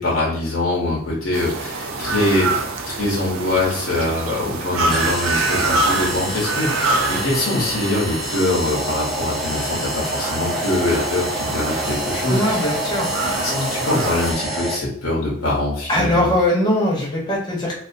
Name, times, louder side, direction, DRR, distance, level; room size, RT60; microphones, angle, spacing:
voice 1, 0.0-2.5 2.9-12.8 13.4-16.3, left 2 dB, 80° left, -5 dB, 0.7 m, -23 dB
sound 1, 1.3-14.3, right 3 dB, 75° right, 0.4 m, -26 dB
sound 2, 4.9-14.8, equal, ahead, 0.4 m, -28 dB
voice 2, 12.3-13.1 13.5-13.7 15.9-17.7, left 1 dB, 20° left, -5 dB, 0.8 m, -20 dB
2.4 x 2.3 x 2.5 m, 0.68 s
head